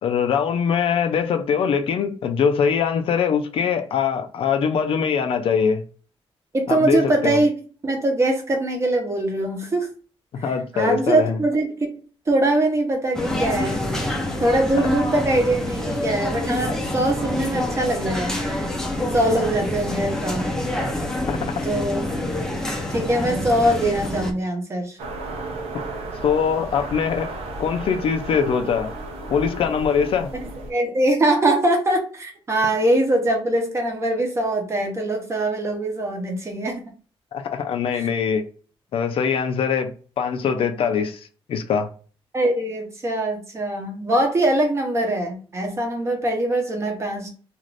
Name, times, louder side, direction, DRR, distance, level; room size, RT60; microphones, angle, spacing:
voice 1, 0.0-5.8 6.7-7.4 10.3-11.4 21.3-21.4 26.2-27.3 27.6-28.9 29.3-30.3 37.3-38.4 38.9-41.2 41.5-41.9, left 6 dB, 65° left, 0.4 m, -22 dB
voice 2, 6.5-7.5 7.8-9.9 10.4-11.9 12.3-13.8 14.4-18.4 19.0-20.5 21.6-22.0 22.9-25.0 30.7-36.8 37.9-38.1 42.3-47.3, right 1 dB, 25° right, 0.8 m, -22 dB
sound 1, 13.1-24.3, left 1 dB, 5° left, 0.5 m, -26 dB
sound 2, 25.0-30.7, right 2 dB, 85° right, 0.7 m, -33 dB
2.5 x 2.5 x 3.2 m
wide cardioid pair, 165°, 10 cm